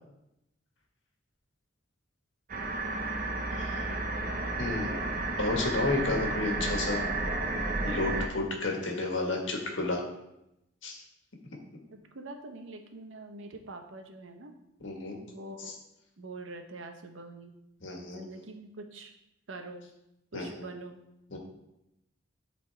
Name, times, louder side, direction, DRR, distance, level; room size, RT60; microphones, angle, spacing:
sound 1, 2.5-8.3, right 2 dB, 45° right, 0.7 m, -32 dB
voice 1, 3.5-4.0 4.6-5.1 5.4-7.0 7.8-10.0 10.8-11.0 14.8-15.2 15.6-15.7 17.8-18.2 20.3-20.7 21.3-21.4, left 2 dB, 70° left, 1 dB, 1.5 m, -32 dB
voice 2, 11.9-14.6 15.3-15.7 16.2-17.5 18.1-19.1 19.5-19.9 20.3-21.0, right 2 dB, 80° right, 5 dB, 0.9 m, -44 dB
11.5 x 3.9 x 3.4 m, 0.86 s
head